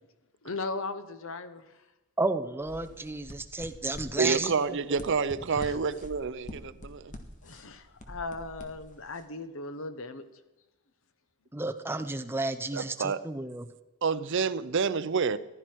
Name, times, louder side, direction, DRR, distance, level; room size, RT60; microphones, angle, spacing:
voice 1, 0.4-1.8 5.5-5.8 7.4-10.2, left 3 dB, 60° left, 11 dB, 1.0 m, -38 dB
voice 2, 2.2-4.8 11.5-13.7, right 2 dB, 10° right, 8 dB, 0.6 m, -32 dB
sound 1, 2.6-9.2, equal, 35° left, 1.5 m, -46 dB
voice 3, 4.2-7.2 12.7-13.2 14.0-15.4, right 5 dB, 55° right, 15 dB, 0.6 m, -28 dB
15.0 x 12.5 x 4.6 m, 1.0 s
head